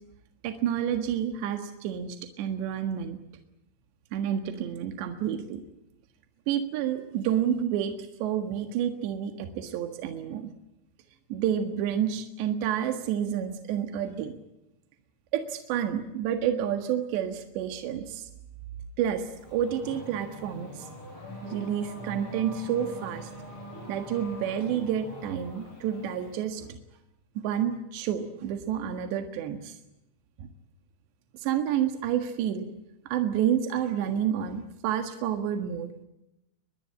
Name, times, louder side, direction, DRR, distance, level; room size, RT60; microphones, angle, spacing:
voice 1, 0.4-3.2 4.1-5.6 6.5-10.5 11.3-14.3 15.3-18.3 19.0-20.9 21.4-23.3 23.9-26.8 27.4-29.8 30.4-30.5 31.3-32.7 33.1-36.0, right 9 dB, 75° right, 7 dB, 3.8 m, -29 dB
Race car auto racing / Accelerating revving vroom, 19.3-26.6, equal, 30° left, 7.2 m, -43 dB
24.0 x 21.0 x 8.6 m, 0.87 s
omnidirectional pair, 5.2 m